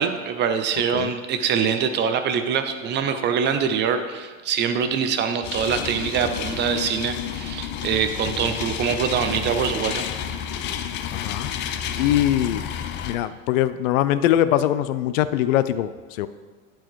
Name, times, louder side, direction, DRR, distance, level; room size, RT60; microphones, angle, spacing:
voice 1, 0.0-10.0, right 7 dB, 30° right, 8 dB, 0.4 m, -24 dB
sound 1, 5.4-13.2, left 8 dB, 30° left, 0.4 m, -30 dB
voice 2, 11.1-12.7 13.0-16.3, left 12 dB, 75° left, 14 dB, 0.5 m, -22 dB
9.2 x 4.6 x 4.5 m, 1.4 s
supercardioid pair, 125°, 40 cm